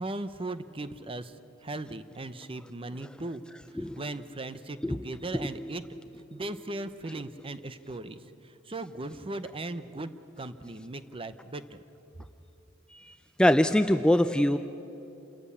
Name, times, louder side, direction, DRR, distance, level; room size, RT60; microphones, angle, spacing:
voice 1, 0.0-1.3 1.6-3.4 3.7-5.8 6.3-8.2 8.7-11.8, right 2 dB, 30° right, 12 dB, 0.8 m, -38 dB
voice 2, 5.3-5.7 12.9-13.1 13.4-14.6, left 1 dB, 5° left, 9 dB, 0.4 m, -24 dB
28.0 x 14.0 x 8.6 m, 2.9 s
head